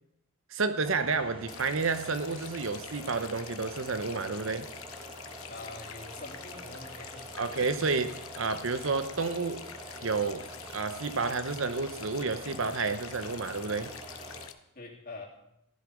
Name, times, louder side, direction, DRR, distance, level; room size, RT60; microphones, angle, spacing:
voice 1, 0.5-4.7 7.4-9.6 10.0-10.4 10.7-13.9, right 4 dB, 60° right, 0.8 m, -30 dB
sound 1, 0.8-14.5, right 1 dB, 25° right, 1.5 m, -46 dB
sound 2, 1.5-14.5, left 10 dB, 75° left, 0.9 m, -47 dB
voice 2, 5.5-7.5 14.7-15.3, left 3 dB, 40° left, 3.0 m, -45 dB
15.5 x 11.0 x 5.2 m
head